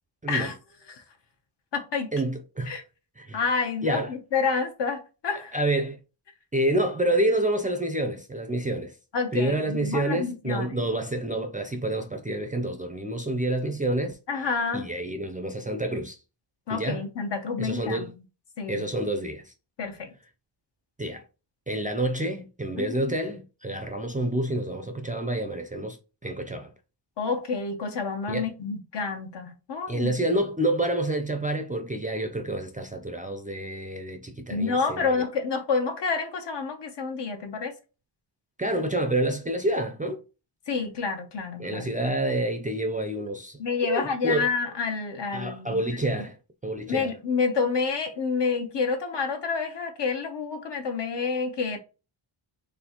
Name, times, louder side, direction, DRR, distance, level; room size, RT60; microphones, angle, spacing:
voice 1, 0.2-0.5 2.1-2.8 3.2-3.4 3.8-4.1 5.5-6.0 6.5-9.0 9.3-14.2 14.7-16.2 16.7-17.0 17.6-18.1 18.7-19.5 21.0-21.2 21.7-26.0 26.2-26.7 28.3-28.5 29.9-35.2 38.6-40.2 41.6-44.5 45.3-46.4 46.6-47.2, right 1 dB, 15° right, 0.4 m, -28 dB
voice 2, 1.7-2.1 2.7-2.8 3.3-5.5 9.1-10.8 14.3-14.9 16.7-18.1 18.6-18.9 19.8-20.1 22.8-23.1 27.2-30.1 34.5-37.7 40.7-41.9 43.6-45.8 46.9-51.8, left 5 dB, 55° left, 1.0 m, -28 dB
4.2 x 3.2 x 2.9 m
wide cardioid pair, 100°, 49 cm